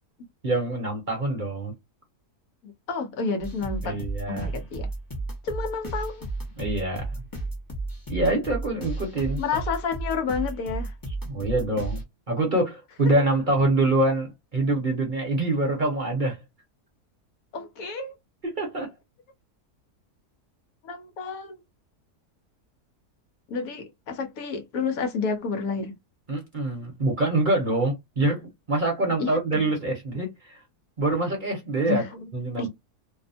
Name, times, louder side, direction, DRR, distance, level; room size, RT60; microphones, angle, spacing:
voice 1, 0.4-1.7 3.8-4.5 6.6-7.3 8.1-9.4 11.2-16.4 18.4-18.9 26.3-28.4 28.7-30.6 31.0-32.0 32.3-32.7, right 2 dB, 40° right, 0.9 m, -25 dB
voice 2, 2.6-4.0 4.3-4.9 5.4-6.3 9.4-10.9 17.5-18.1 20.8-21.6 23.5-25.9 29.2-29.6 31.9-32.3 32.6-32.7, left 5 dB, 70° left, 1.1 m, -30 dB
sound 1, 3.4-12.0, right 2 dB, 20° left, 0.5 m, -33 dB
2.8 x 2.1 x 2.6 m
omnidirectional pair, 1.7 m